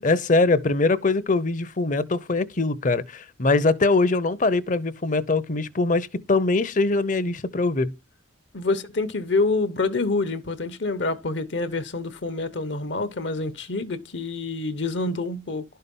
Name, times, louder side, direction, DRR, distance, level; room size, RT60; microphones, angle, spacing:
voice 1, 0.0-7.9, left 3 dB, 40° left, 0.7 m, -22 dB
voice 2, 8.5-15.6, left 3 dB, 70° left, 1.0 m, -27 dB
11.5 x 5.6 x 5.5 m
head